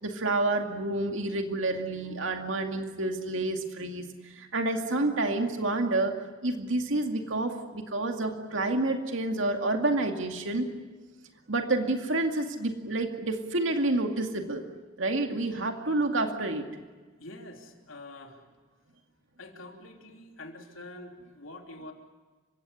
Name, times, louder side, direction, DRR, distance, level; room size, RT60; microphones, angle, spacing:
voice 1, 0.0-6.2 6.4-10.7 11.5-14.7 15.0-16.7, right 2 dB, 70° right, 4 dB, 2.3 m, -29 dB
voice 2, 17.2-18.4 19.4-21.9, left 2 dB, 80° left, 3 dB, 3.2 m, -46 dB
30.0 x 17.0 x 9.8 m, 1.3 s
head